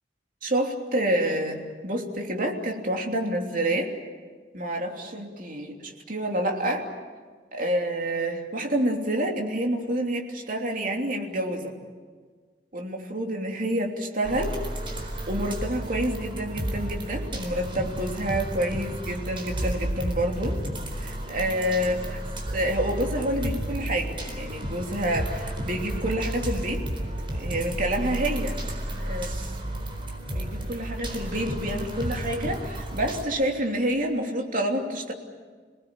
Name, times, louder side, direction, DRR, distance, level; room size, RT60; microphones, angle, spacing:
voice 1, 0.4-3.9 4.5-6.9 7.5-11.7 12.7-14.6 15.3-20.6 20.9-22.0 22.5-27.1 27.3-28.6 29.0-29.6 30.3-35.1, right 1 dB, 50° right, 1 dB, 3.1 m, -28 dB
sound 1, 14.2-33.2, right 1 dB, 30° right, 4.2 m, -32 dB
27.5 x 19.0 x 8.8 m, 1.5 s
head